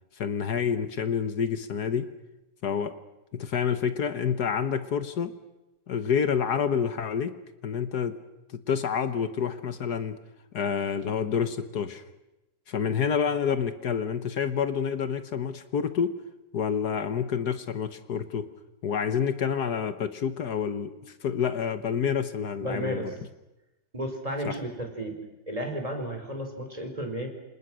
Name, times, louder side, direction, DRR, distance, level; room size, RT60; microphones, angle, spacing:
voice 1, 0.2-2.1 2.6-2.9 3.3-5.3 5.9-7.4 7.6-8.2 8.5-10.2 10.5-12.0 12.7-16.2 16.5-18.5 18.8-23.1 24.4-24.6, left 7 dB, 70° left, 11 dB, 1.7 m, -28 dB
voice 2, 22.6-23.1 23.9-25.1 25.5-27.3, right 1 dB, 20° right, 3 dB, 5.0 m, -33 dB
29.0 x 27.0 x 6.3 m, 0.97 s
omnidirectional pair, 1.8 m